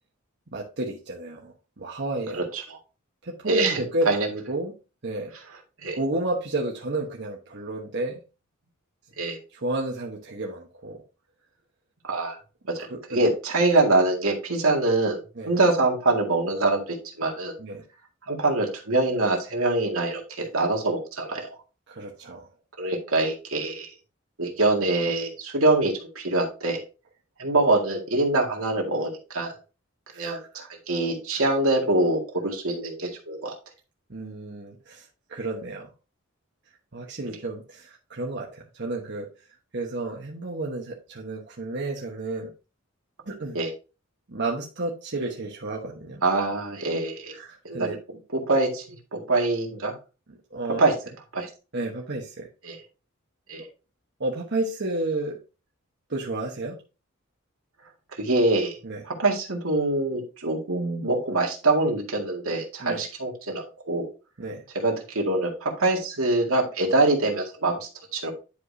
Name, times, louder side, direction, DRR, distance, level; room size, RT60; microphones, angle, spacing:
voice 1, 0.5-2.4 3.2-4.7 5.0-5.3 5.9-8.2 9.5-11.0 12.9-13.3 15.3-15.5 17.6-17.8 21.9-22.5 30.1-30.7 31.3-31.4 34.1-35.9 36.9-39.3 39.7-42.5 43.3-43.6 44.3-46.2 47.3-48.0 50.5-50.8 51.7-52.5 54.2-55.4 56.1-56.8 58.8-59.0 62.8-63.0 64.4-64.6, right 2 dB, 55° right, -1 dB, 1.2 m, -31 dB
voice 2, 2.3-2.8 3.5-4.3 5.8-6.0 9.2-9.4 12.0-12.4 12.7-15.2 15.5-17.6 18.3-21.5 22.8-23.9 24.4-26.8 27.4-29.6 30.2-33.5 37.3-37.4 43.5-43.7 46.2-47.4 47.6-48.0 48.3-49.9 50.8-50.9 51.3-51.5 52.6-52.8 53.5-53.7 58.1-58.8 59.0-64.1 64.7-68.3, right 2 dB, 80° right, 1 dB, 2.1 m, -24 dB
10.5 x 5.0 x 2.7 m, 0.31 s
head